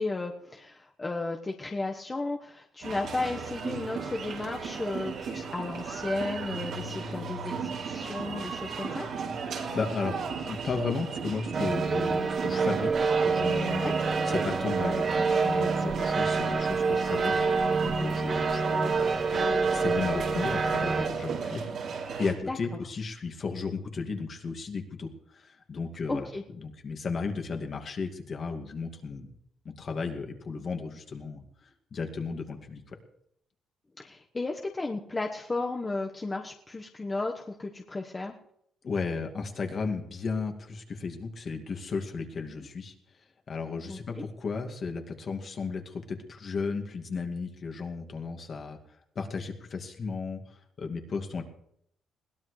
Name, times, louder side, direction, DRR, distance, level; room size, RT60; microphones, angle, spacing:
voice 1, 0.0-9.1 13.8-13.9 22.5-22.6 26.1-26.4 34.0-38.3 43.9-44.2, left 3 dB, 25° left, 1 dB, 1.3 m, -34 dB
sound 1, 2.8-22.3, right 5 dB, 70° right, 4.5 m, -35 dB
voice 2, 9.7-10.2 10.5-13.8 14.2-17.3 17.8-26.3 26.6-29.3 29.6-33.0 38.8-42.9 43.5-48.8 49.2-51.4, left 4 dB, 50° left, 3 dB, 2.3 m, -34 dB
sound 2, 11.5-21.1, right 4 dB, 45° right, 1.8 m, -27 dB
21.5 x 16.5 x 3.3 m, 0.73 s
cardioid pair, 90°, 0 cm